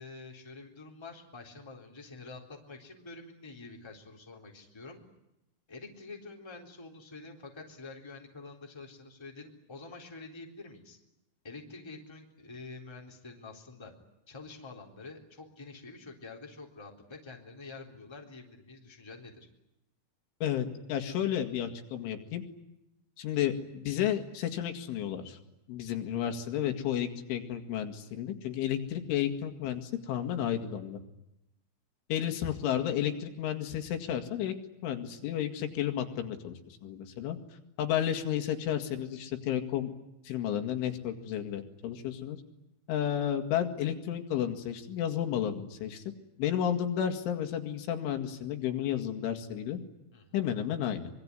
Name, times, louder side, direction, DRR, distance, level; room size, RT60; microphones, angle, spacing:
voice 1, 0.0-5.0 5.7-11.0 11.4-13.9 14.3-19.5 50.1-50.5, left 3 dB, 5° left, 1 dB, 2.9 m, -47 dB
voice 2, 20.4-22.4 23.2-25.4 25.7-31.0 32.1-34.5 34.8-37.4 37.8-39.9 40.2-42.4 42.9-46.0 46.4-49.8 50.3-51.1, left 10 dB, 80° left, 6 dB, 4.6 m, -32 dB
25.0 x 23.0 x 9.8 m, 0.87 s
omnidirectional pair, 5.6 m